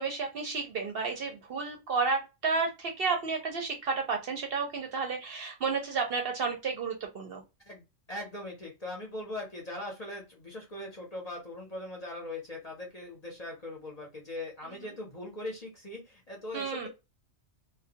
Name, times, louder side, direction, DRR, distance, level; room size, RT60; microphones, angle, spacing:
voice 1, 0.0-7.4 16.5-16.9, right 4 dB, 60° right, 3 dB, 0.7 m, -31 dB
voice 2, 7.7-16.9, left 1 dB, 40° left, -2 dB, 0.7 m, -40 dB
2.2 x 2.1 x 2.7 m, 0.25 s
omnidirectional pair, 1.3 m